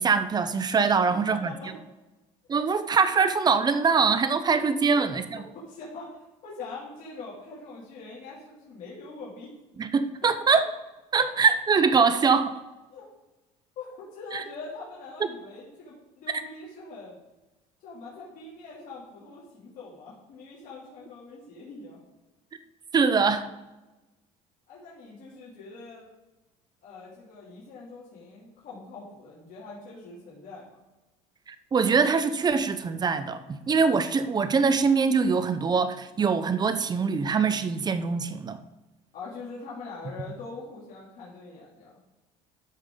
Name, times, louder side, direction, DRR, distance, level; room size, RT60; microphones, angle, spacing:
voice 1, 0.0-1.5 2.5-5.2 9.8-10.7 11.1-12.6 14.3-14.4 22.9-23.5 31.5-38.6, right 5 dB, 25° right, 0.8 m, -23 dB
voice 2, 5.5-9.5 11.1-11.3 12.9-13.1 13.8-17.2 17.8-22.0 24.7-26.1 26.8-30.8 39.1-41.9, left 3 dB, 60° left, 3.0 m, -43 dB
13.0 x 5.3 x 3.8 m
supercardioid pair, 100°, 15 cm